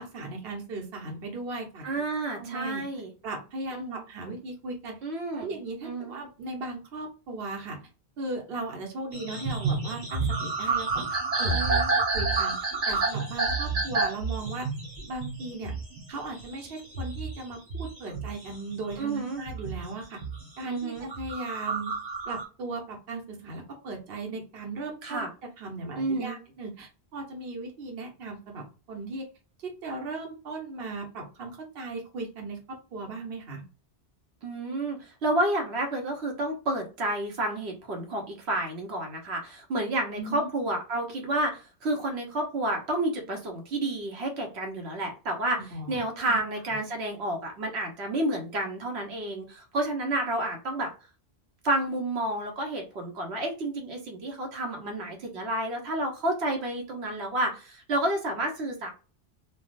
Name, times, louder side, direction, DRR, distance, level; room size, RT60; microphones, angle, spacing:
voice 1, 0.0-2.0 2.3-2.8 3.2-5.0 5.3-7.8 8.2-11.8 12.1-12.5 12.9-14.7 15.1-15.7 16.1-20.2 20.6-21.9 22.3-25.3 25.6-29.2 29.6-32.6 32.9-33.6 40.2-40.5 45.7-46.4, right 3 dB, 70° right, 1 dB, 1.0 m, -37 dB
voice 2, 1.8-3.1 3.7-4.0 5.0-5.6 5.8-6.2 11.5-11.9 19.0-19.4 20.6-21.1 25.0-25.3 26.0-26.4 34.4-45.6 45.9-50.9 51.6-58.9, right 1 dB, 85° right, 1 dB, 1.1 m, -30 dB
sound 1, 9.1-19.0 19.5-20.5 21.0-22.4, right 3 dB, 40° right, 1.0 m, -29 dB
3.3 x 2.3 x 2.4 m, 0.34 s
omnidirectional pair, 1.1 m